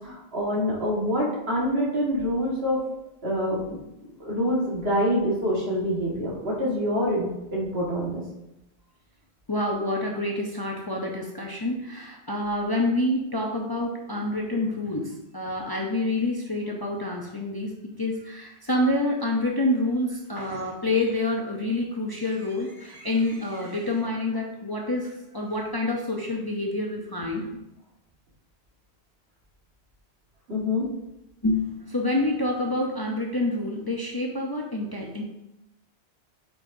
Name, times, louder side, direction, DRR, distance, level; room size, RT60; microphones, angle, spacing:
voice 1, 0.0-2.8 3.2-3.8 4.2-8.2 30.5-30.9, equal, 65° right, -4 dB, 1.9 m, -26 dB
voice 2, 9.5-27.5 31.4-35.2, left 2 dB, 25° left, -1 dB, 0.6 m, -27 dB
8.2 x 4.6 x 2.7 m, 0.89 s
omnidirectional pair, 1.1 m